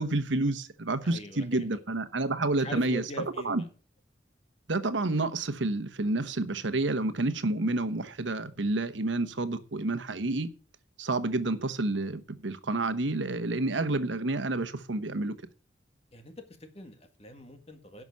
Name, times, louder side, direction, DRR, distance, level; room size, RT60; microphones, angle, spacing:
voice 1, 0.0-3.0 3.4-3.6 4.7-10.5 11.0-15.3, right 2 dB, 90° right, 1.1 m, -29 dB
voice 2, 1.0-1.7 2.6-3.7 16.1-16.3 16.6-18.0, left 1 dB, 35° left, 1.8 m, -43 dB
11.0 x 6.1 x 6.2 m
head